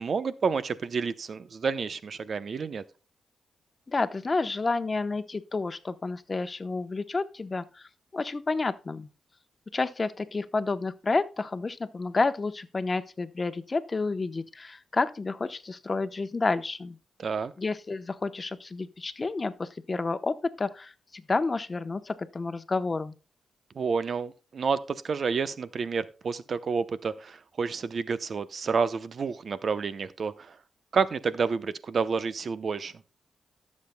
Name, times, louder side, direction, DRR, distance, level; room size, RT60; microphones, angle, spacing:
voice 1, 0.0-2.8 17.2-17.5 23.7-30.6 30.9-32.9, right 5 dB, 60° right, 0.7 m, -29 dB
voice 2, 3.9-9.1 9.7-17.0 17.6-23.1, left 3 dB, 35° left, 0.9 m, -30 dB
18.5 x 7.4 x 2.2 m
cardioid pair, 65°, 0 cm